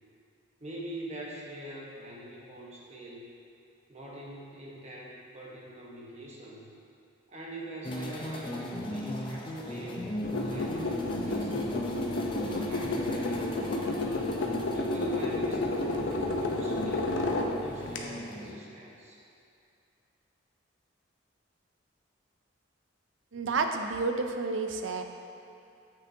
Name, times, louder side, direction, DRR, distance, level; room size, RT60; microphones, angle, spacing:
voice 1, 0.6-3.2 3.9-6.7 7.3-10.2 10.4-11.8 12.3-14.2 14.7-17.2 17.6-19.2, right 1 dB, 35° right, -4 dB, 1.0 m, -44 dB
sound 1, 7.8-18.5, left 1 dB, 25° left, 0.5 m, -37 dB
puodelis skukais stoja, 10.2-18.0, left 2 dB, 70° left, 0.7 m, -31 dB
voice 2, 23.3-25.0, right 4 dB, 75° right, 5 dB, 0.5 m, -30 dB
8.3 x 6.2 x 2.7 m, 2.6 s
head